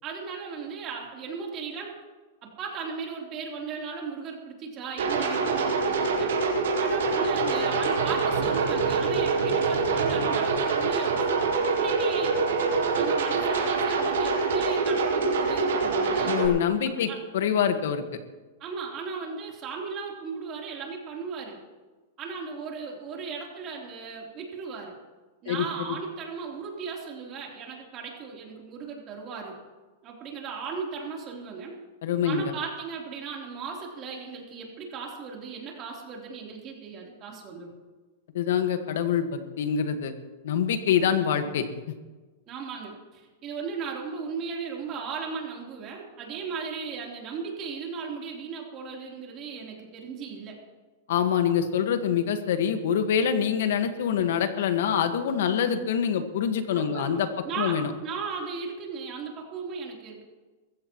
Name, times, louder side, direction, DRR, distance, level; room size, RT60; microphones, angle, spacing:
voice 1, 0.0-2.0 2.4-6.4 6.8-11.3 11.8-12.4 12.9-16.4 17.0-17.2 18.6-21.6 22.2-24.9 25.4-29.6 30.0-31.7 32.2-37.7 42.5-50.6 56.7-60.2, right 5 dB, 30° right, -1 dB, 3.5 m, -36 dB
sound 1, 5.0-16.5, right 4 dB, 85° right, 4.6 m, -25 dB
voice 2, 16.3-18.0 25.4-25.6 32.0-32.4 38.3-40.1 40.4-41.7 51.1-57.3 57.6-57.9, left 8 dB, 75° left, 8 dB, 1.6 m, -25 dB
22.0 x 15.0 x 3.1 m, 1.3 s
supercardioid pair, 150°, 0 cm